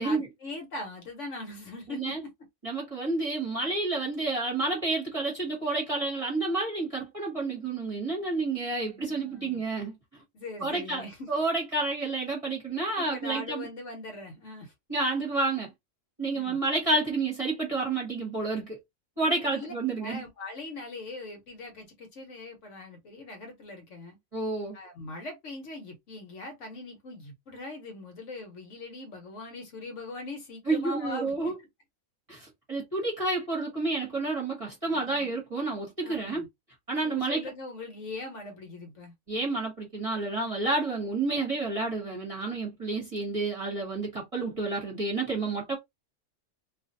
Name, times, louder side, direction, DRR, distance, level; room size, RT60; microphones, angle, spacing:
voice 1, 0.0-2.3 8.8-9.6 10.3-11.3 13.0-14.7 16.3-16.6 19.3-24.2 24.7-31.5 34.8-35.3 36.0-36.5 37.0-39.1, left 2 dB, 60° left, 1.0 m, -41 dB
voice 2, 1.9-2.2 2.6-10.2 10.6-13.7 14.9-15.7 16.2-18.8 19.2-20.2 24.3-24.8 30.7-31.6 32.3-36.4 36.9-37.4 39.3-45.8, right 3 dB, 25° right, 1.0 m, -30 dB
2.5 x 2.4 x 2.5 m
omnidirectional pair, 1.5 m